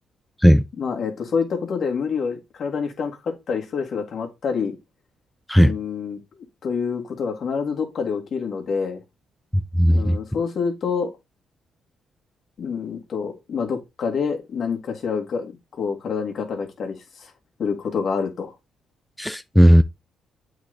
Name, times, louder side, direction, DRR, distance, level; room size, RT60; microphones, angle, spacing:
voice 1, 0.8-4.8 5.6-9.0 9.9-11.1 12.6-17.3 17.6-18.6, left 5 dB, 55° left, 2.0 m, -27 dB
voice 2, 9.8-10.2 19.2-19.8, equal, 5° left, 0.4 m, -14 dB
8.0 x 3.9 x 3.4 m
cardioid pair, 90°, 0 cm